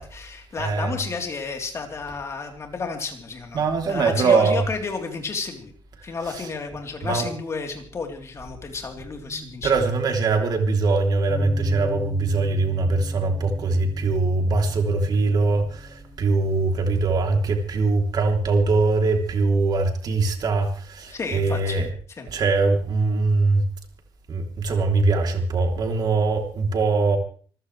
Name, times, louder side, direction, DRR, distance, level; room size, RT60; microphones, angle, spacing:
voice 1, 0.0-5.7 6.0-9.7 21.1-21.9 22.2-22.3, left 4 dB, 30° left, 3 dB, 3.7 m, -32 dB
voice 2, 0.6-0.9 3.5-4.6 6.3-6.5 7.0-7.3 9.3-21.9 22.3-23.7 24.3-27.2, right 3 dB, 45° right, 4 dB, 3.3 m, -22 dB
Bass guitar, 11.3-17.5, left 1 dB, 15° left, 2.3 m, -40 dB
26.0 x 15.0 x 3.3 m, 0.43 s
cardioid pair, 150°, 9 cm